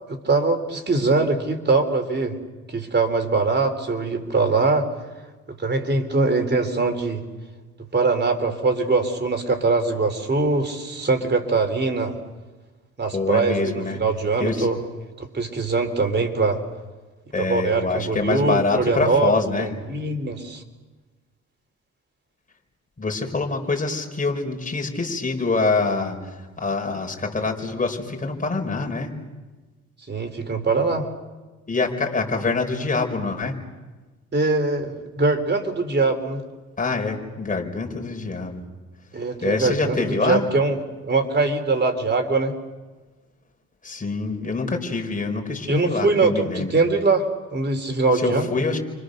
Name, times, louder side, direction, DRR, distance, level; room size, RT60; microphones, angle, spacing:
voice 1, 0.1-2.4 2.7-4.9 5.6-7.2 7.9-12.1 13.0-14.8 15.2-16.6 17.4-19.3 19.6-20.6 30.1-31.1 34.3-36.4 39.1-40.8 41.0-42.6 45.7-47.2 47.5-48.5, right 3 dB, 35° right, 5 dB, 4.0 m, -22 dB
voice 2, 13.1-14.0 14.4-14.7 17.3-19.7 23.0-29.1 31.7-33.6 36.8-38.6 39.4-40.4 43.8-46.7 48.1-48.8, left 3 dB, 25° left, 3 dB, 4.9 m, -25 dB
30.0 x 25.0 x 6.7 m, 1.3 s
cardioid pair, 90°, 30 cm